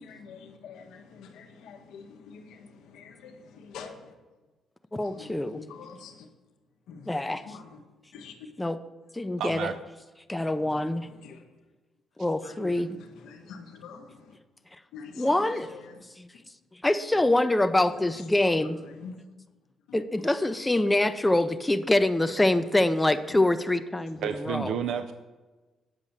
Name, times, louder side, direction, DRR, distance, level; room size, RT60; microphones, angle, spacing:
voice 1, 0.0-4.1 4.9-6.3 6.9-7.8 8.1-8.4 10.4-11.4 12.4-14.4 14.9-16.0 18.4-19.2 23.3-23.4 24.1-24.2, left 5 dB, 85° left, 4 dB, 1.1 m, -46 dB
voice 2, 4.9-5.6 7.1-7.4 8.6-8.8 9.1-9.7 10.3-11.1 12.2-13.0 15.2-15.7 16.2-16.3 16.8-18.8 19.9-24.8, left 1 dB, 10° left, 9 dB, 0.5 m, -25 dB
voice 3, 9.4-9.7 24.2-25.1, right 7 dB, 75° right, 9 dB, 0.5 m, -30 dB
8.3 x 5.2 x 7.1 m, 1.2 s
cardioid pair, 90°, 0 cm